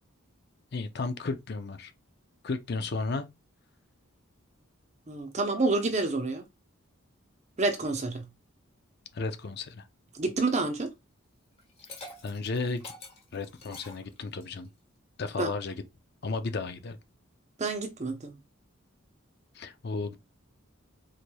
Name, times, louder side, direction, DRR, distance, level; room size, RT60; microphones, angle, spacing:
voice 1, 0.7-1.9 2.4-3.3 9.1-9.9 12.2-12.9 13.3-14.7 15.2-15.8 16.2-17.0 19.5-20.1, left 3 dB, 50° left, 0.5 m, -33 dB
voice 2, 5.1-6.4 7.6-8.3 10.1-10.9 15.4-15.5 17.6-18.4, right 3 dB, 30° right, 0.6 m, -28 dB
Liquid, 11.6-14.7, left 2 dB, 30° left, 1.2 m, -47 dB
4.0 x 3.1 x 2.2 m
head